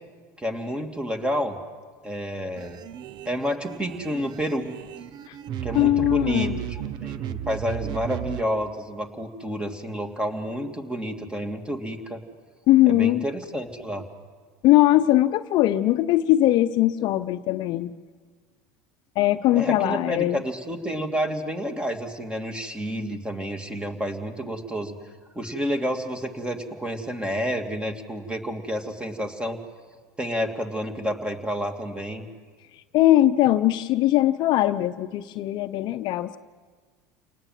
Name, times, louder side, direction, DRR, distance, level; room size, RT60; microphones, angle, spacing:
voice 1, 0.4-1.6 2.0-2.8 3.3-4.7 5.6-12.2 12.9-14.0 19.5-24.9 25.3-29.6 30.2-32.3, equal, 10° right, 5 dB, 2.8 m, -29 dB
sound 1, 2.6-8.4, right 11 dB, 55° right, 0.9 m, -34 dB
voice 2, 5.7-6.6 12.7-13.2 14.6-17.9 19.2-20.4 32.9-36.4, left 14 dB, 55° left, 10 dB, 0.8 m, -20 dB
28.5 x 19.0 x 7.7 m, 1.5 s
supercardioid pair, 100°, 9 cm